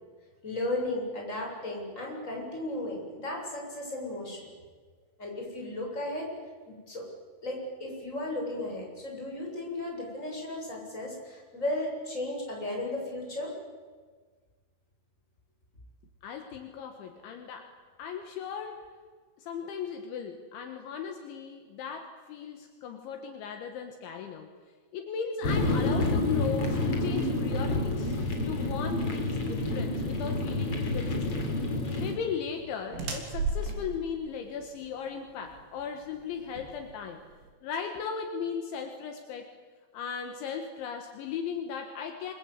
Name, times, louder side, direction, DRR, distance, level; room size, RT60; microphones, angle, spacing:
voice 1, 0.4-4.5 5.2-6.3 6.7-7.1 7.4-13.5, left 1 dB, 15° left, -1 dB, 7.4 m, -35 dB
voice 2, 16.2-17.7 18.0-18.9 19.4-24.5 24.9-31.5 32.0-37.2 37.6-39.5 39.9-42.3, left 6 dB, 70° left, 4 dB, 3.9 m, -37 dB
sound 1, 25.4-32.1, left 2 dB, 30° left, 4.1 m, -28 dB
sound 2, 31.4-37.5, right 3 dB, 70° right, 5.8 m, -37 dB
28.0 x 24.5 x 8.3 m, 1.5 s
omnidirectional pair, 5.7 m